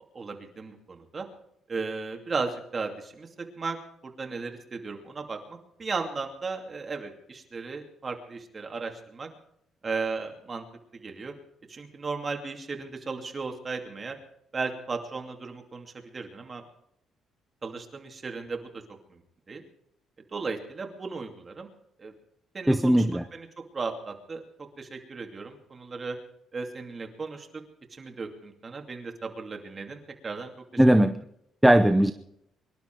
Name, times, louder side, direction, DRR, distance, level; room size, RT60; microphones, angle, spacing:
voice 1, 0.1-1.3 1.7-3.8 4.0-9.3 9.8-10.6 10.9-11.3 11.7-14.2 14.5-16.6 17.6-18.6 19.1-19.2 19.5-19.6 20.3-21.7 22.0-22.1 22.5-23.1 23.3-23.5 23.7-24.4 24.8-26.2 26.5-27.5 27.9-30.8, right 4 dB, 25° right, 3 dB, 2.6 m, -35 dB
voice 2, 22.7-23.2 30.8-31.2 31.6-32.1, right 1 dB, 5° right, 8 dB, 0.7 m, -19 dB
24.5 x 11.5 x 4.7 m, 0.75 s
cardioid pair, 145°, 0 cm